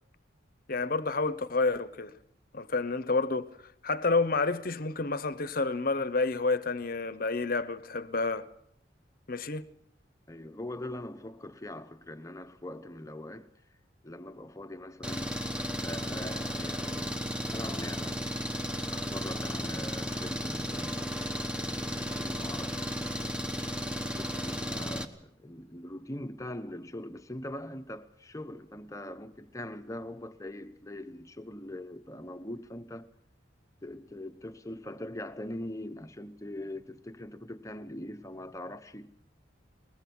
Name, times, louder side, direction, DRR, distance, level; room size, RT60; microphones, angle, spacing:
voice 1, 0.7-2.1 2.5-3.5 3.8-8.5 9.3-9.6, left 3 dB, 50° left, 0.9 m, -29 dB
voice 2, 10.3-13.5 14.0-15.4 15.8-17.3 17.5-18.2 18.9-21.3 21.5-23.1 24.0-33.1 33.8-39.1, left 1 dB, 15° left, 1.0 m, -42 dB
Engine, 15.0-25.0, equal, 5° right, 1.1 m, -34 dB
22.0 x 20.0 x 6.2 m
head